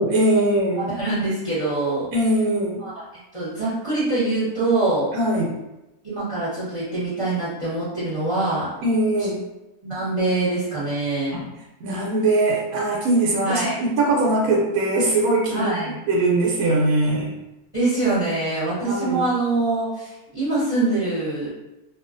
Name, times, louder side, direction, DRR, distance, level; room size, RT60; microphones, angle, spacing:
voice 1, 0.0-0.8 2.1-2.8 5.1-5.5 8.8-9.4 11.8-15.7 16.1-17.3 18.8-19.2, right 2 dB, 75° right, -3 dB, 1.1 m, -21 dB
voice 2, 0.8-2.1 2.8-3.0 3.3-5.1 6.0-8.7 9.8-11.4 13.4-13.7 15.5-16.0 17.7-21.5, right 2 dB, 25° right, -12 dB, 1.0 m, -24 dB
2.8 x 2.4 x 2.4 m, 0.95 s
omnidirectional pair, 1.6 m